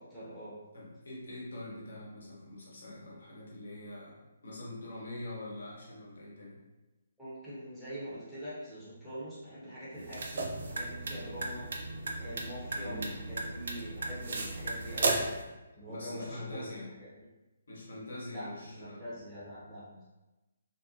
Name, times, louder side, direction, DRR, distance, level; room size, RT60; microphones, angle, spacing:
voice 1, 0.0-0.5 7.2-11.7 12.2-15.3 15.7-16.7 17.0-17.1 18.3-19.8, equal, ahead, -13 dB, 0.9 m, -44 dB
voice 2, 0.7-6.6 12.8-13.2 15.9-16.9 17.7-19.0 19.9-20.1, left 1 dB, 65° left, -5 dB, 0.9 m, -44 dB
sound 1, 9.9-15.4, right 2 dB, 55° right, 0.4 m, -35 dB
2.7 x 2.1 x 2.6 m, 1.1 s
figure-of-eight pair, 135°, 0 cm